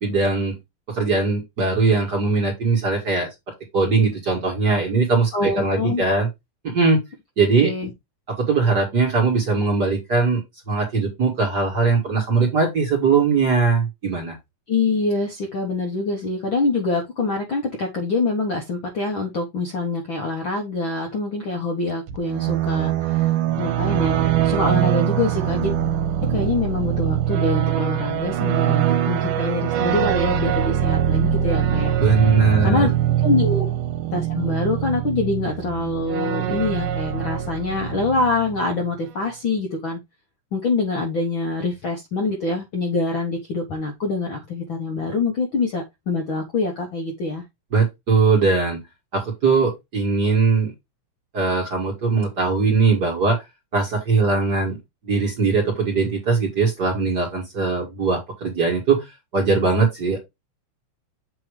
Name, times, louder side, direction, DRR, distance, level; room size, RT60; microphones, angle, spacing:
voice 1, 0.0-0.6 0.9-3.3 3.7-6.3 6.6-7.0 7.4-7.7 8.4-14.4 32.0-32.9 33.5-33.6 47.7-48.8 49.1-50.7 51.3-53.4 53.7-54.8 55.1-59.1 59.3-60.2, right 4 dB, 40° right, 1.8 m, -20 dB
voice 2, 5.3-6.0 7.6-7.9 14.7-23.3 23.6-25.7 26.3-32.0 32.6-32.9 33.2-33.7 34.1-40.0 40.5-47.4, left 3 dB, 55° left, 1.4 m, -25 dB
sound 1, 22.1-38.7, right 11 dB, 85° right, 2.3 m, -23 dB
7.7 x 3.0 x 4.8 m
omnidirectional pair, 3.8 m